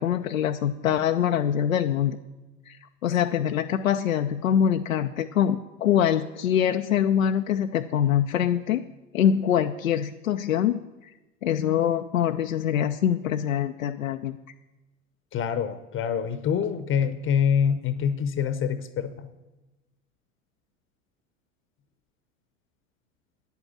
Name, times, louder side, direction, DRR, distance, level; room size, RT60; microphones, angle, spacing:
voice 1, 0.0-2.2 2.7-2.8 3.0-8.8 9.1-10.8 11.4-14.4, left 9 dB, 80° left, 6 dB, 0.5 m, -24 dB
voice 2, 15.3-19.1, left 7 dB, 30° left, 12 dB, 0.8 m, -25 dB
9.4 x 8.2 x 8.6 m, 1.1 s
figure-of-eight pair, 80°, 39 cm